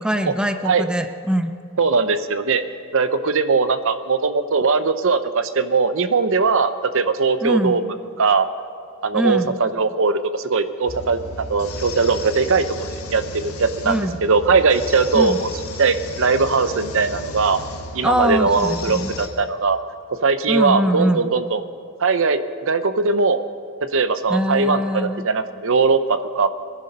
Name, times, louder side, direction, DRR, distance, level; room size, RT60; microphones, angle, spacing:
voice 1, 0.0-1.5 7.4-7.8 9.1-9.6 13.8-14.2 15.1-15.4 18.0-19.1 20.5-21.3 24.3-25.3, equal, 5° right, 7 dB, 0.5 m, -22 dB
voice 2, 1.8-2.6 2.9-8.5 9.0-12.7 13.1-15.5 15.8-17.6 17.9-19.8 20.2-21.6 22.0-23.4 23.9-26.5, right 4 dB, 60° right, 11 dB, 0.7 m, -20 dB
sound 1, 10.9-19.3, left 1 dB, 85° left, 1.7 m, -34 dB
22.5 x 11.0 x 5.4 m, 2.5 s
head